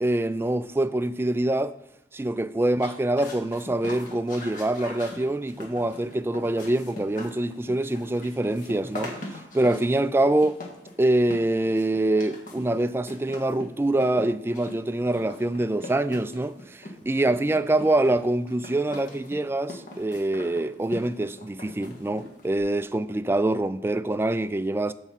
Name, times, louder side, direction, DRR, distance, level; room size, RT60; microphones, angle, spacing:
voice 1, 0.0-1.7 2.1-10.6 11.0-24.9, right 1 dB, 15° right, 0.3 m, -25 dB
sound 1, 2.7-22.6, left 1 dB, 50° left, 1.8 m, -42 dB
14.5 x 5.5 x 4.0 m
head